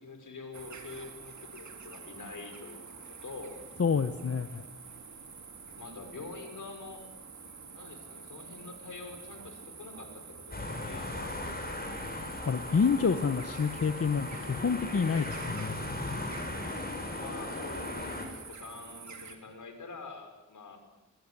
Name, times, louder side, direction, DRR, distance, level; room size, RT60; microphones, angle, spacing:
voice 1, 0.0-2.9 3.2-3.6 5.8-7.1 7.7-11.4 17.1-20.8, left 3 dB, 75° left, 6 dB, 5.9 m, -46 dB
sound 1, 0.5-19.4, right 5 dB, 65° right, 3.2 m, -48 dB
voice 2, 3.8-4.6 12.5-15.8, left 5 dB, 50° left, 9 dB, 1.2 m, -28 dB
sound 2, 10.5-18.3, left 2 dB, 30° left, 7.2 m, -38 dB
22.5 x 22.5 x 9.9 m, 1.0 s
wide cardioid pair, 85°, 32 cm